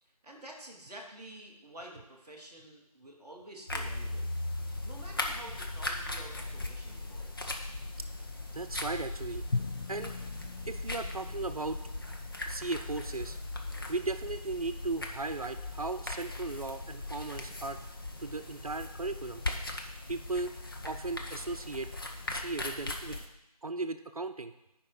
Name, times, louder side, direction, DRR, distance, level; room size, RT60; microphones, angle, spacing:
voice 1, 0.0-4.3 4.8-7.6, right 1 dB, 5° right, -10 dB, 0.8 m, -49 dB
sound 1, 3.7-23.3, left 2 dB, 35° left, 0.8 m, -39 dB
voice 2, 8.5-9.5 9.9-10.2 10.6-11.8 12.5-13.4 13.9-17.8 18.2-19.4 20.1-20.5 20.8-21.9 22.3-23.2 23.6-24.5, right 3 dB, 65° right, 8 dB, 0.6 m, -36 dB
Drum, 9.5-12.5, left 4 dB, 75° left, 0.4 m, -39 dB
9.7 x 5.3 x 4.9 m, 0.87 s
figure-of-eight pair, 160°, 20 cm